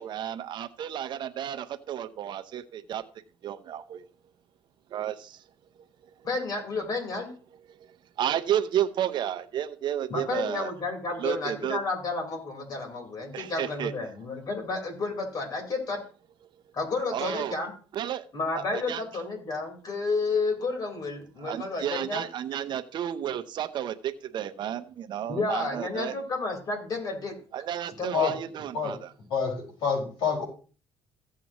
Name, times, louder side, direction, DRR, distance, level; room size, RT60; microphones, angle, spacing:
voice 1, 0.0-3.0 3.4-4.1 4.9-5.4 5.8-6.1 7.7-10.7 11.2-11.8 13.3-13.9 17.1-17.6 17.9-18.2 18.6-19.0 21.4-26.1 27.5-29.1, right 10 dB, 55° right, 11 dB, 0.8 m, -32 dB
voice 2, 6.2-7.3 10.1-16.0 16.7-17.7 18.3-22.2 25.3-27.3 28.0-28.3, left 3 dB, 45° left, 2 dB, 4.3 m, -31 dB
voice 3, 29.3-30.4, left 6 dB, 70° left, 0 dB, 5.2 m, -27 dB
15.5 x 7.7 x 3.0 m, 0.39 s
cardioid pair, 105°, 9 cm